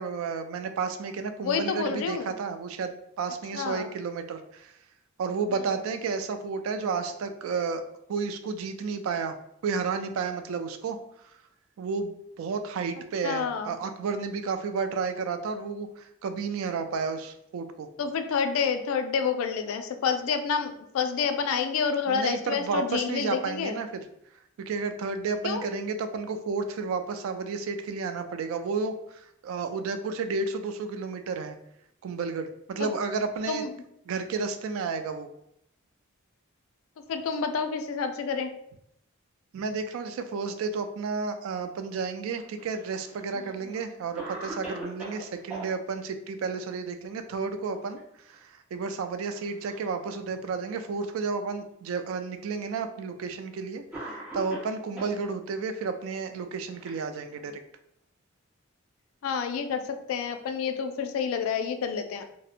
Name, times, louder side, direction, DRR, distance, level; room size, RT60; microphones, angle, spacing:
voice 1, 0.0-4.7 5.2-7.8 8.1-9.4 9.6-11.0 11.8-17.9 22.1-24.0 24.6-31.6 32.0-33.7 34.1-35.3 39.5-57.6, right 4 dB, 80° right, 9 dB, 0.3 m, -32 dB
voice 2, 1.4-2.3 3.5-3.9 13.2-13.8 18.0-23.8 25.4-25.7 32.8-32.9 33.5-33.7 37.1-38.5 59.2-59.8 60.1-62.2, left 6 dB, 85° left, 7 dB, 0.3 m, -28 dB
Cough, 42.4-43.2 43.7-43.8 44.2-45.7 47.6-48.0 48.3-48.4 49.2-49.9 50.7-50.8 51.9-52.0 53.1-53.3 53.9-55.2 56.1-57.6, right 2 dB, 5° right, 0.8 m, -41 dB
2.7 x 2.0 x 2.4 m, 0.75 s
head